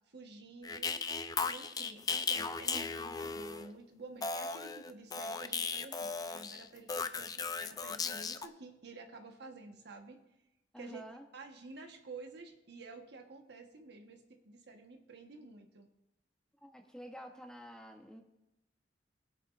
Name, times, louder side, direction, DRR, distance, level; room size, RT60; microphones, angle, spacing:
voice 1, 0.1-0.9 1.4-10.2 10.8-11.0 11.3-15.9, right 3 dB, 65° right, 4 dB, 1.2 m, -51 dB
sound 1, 0.6-3.7 4.2-8.5, left 5 dB, 20° left, 0.4 m, -36 dB
voice 2, 10.7-11.3 16.6-18.2, equal, 5° left, 3 dB, 1.0 m, -49 dB
20.5 x 8.1 x 2.5 m, 0.93 s
head